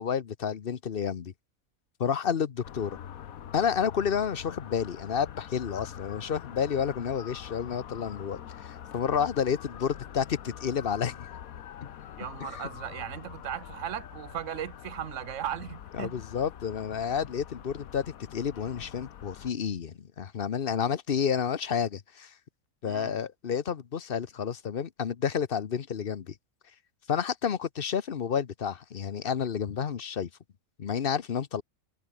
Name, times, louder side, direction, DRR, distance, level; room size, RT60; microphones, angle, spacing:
voice 1, 0.0-1.3 2.0-3.0 3.5-11.3 11.8-11.9 16.0-22.3 22.8-26.3 27.1-30.3 30.8-31.6, left 7 dB, 45° left, 1.0 m, -30 dB
sound 1, 2.6-19.5, left 9 dB, 75° left, 1.4 m, -44 dB
voice 2, 12.2-16.2 22.8-23.1, right 10 dB, 60° right, 1.2 m, -37 dB
omnidirectional pair, 1.5 m